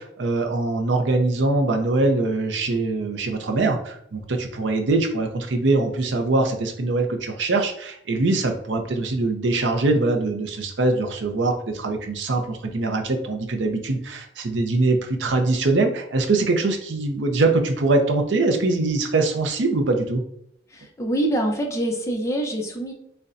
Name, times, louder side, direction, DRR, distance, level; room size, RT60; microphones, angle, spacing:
voice 1, 0.0-20.2, right 2 dB, 80° right, 4 dB, 0.6 m, -23 dB
voice 2, 20.7-22.9, right 1 dB, 15° left, 1 dB, 0.6 m, -25 dB
6.5 x 2.2 x 2.5 m, 0.70 s
head